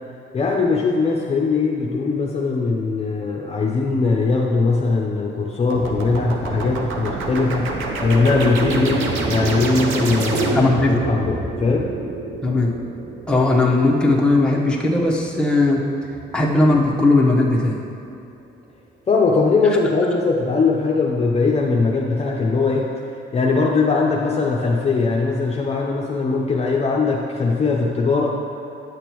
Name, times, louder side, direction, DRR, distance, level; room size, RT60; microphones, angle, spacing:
voice 1, 0.3-10.6 10.9-11.9 19.1-28.4, left 4 dB, 30° left, -2 dB, 0.7 m, -20 dB
sound 1, 5.7-10.9, right 3 dB, 90° right, 0.8 m, -28 dB
sound 2, 7.4-17.9, right 2 dB, 30° right, 0.7 m, -30 dB
voice 2, 10.5-11.0 12.4-12.7 13.3-15.8 16.3-17.8, left 2 dB, 5° left, -3 dB, 1.1 m, -17 dB
9.1 x 6.5 x 3.1 m, 2.6 s
cardioid pair, 90°, 20 cm